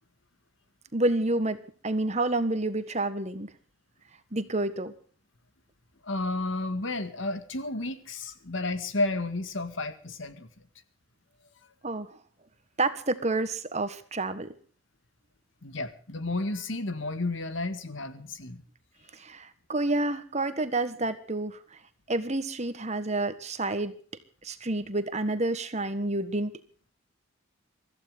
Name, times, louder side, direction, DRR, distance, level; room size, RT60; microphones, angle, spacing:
voice 1, 0.9-3.5 4.3-4.9 11.8-12.1 12.8-14.5 19.1-21.6 22.1-23.9 24.4-26.5, right 2 dB, 35° right, 11 dB, 1.5 m, -29 dB
voice 2, 6.0-10.5 15.6-18.6, left 2 dB, 65° left, 11 dB, 1.8 m, -32 dB
24.5 x 15.0 x 3.7 m, 0.42 s
head